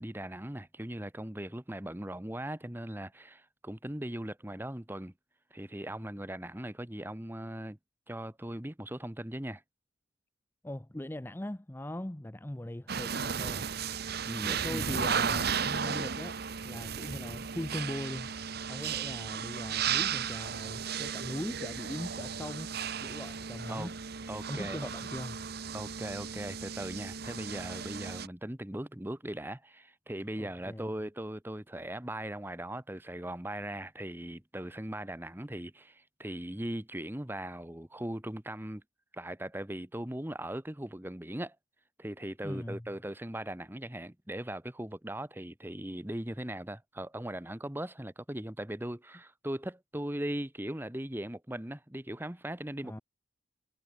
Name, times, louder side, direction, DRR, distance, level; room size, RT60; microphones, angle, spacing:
voice 1, 0.0-5.1 5.5-7.8 8.1-9.6 14.2-14.8 23.7-23.9 24.3-24.9 25.7-38.8 39.1-41.6 42.0-53.0, right 1 dB, 10° right, 1.0 m, -39 dB
voice 2, 10.6-13.7 14.4-18.3 18.7-22.7 23.0-24.0 24.5-25.4 30.4-30.9 42.4-42.9 52.8-53.0, left 1 dB, 10° left, 0.5 m, -40 dB
sound 1, 12.9-28.3, right 7 dB, 50° right, 0.9 m, -35 dB
head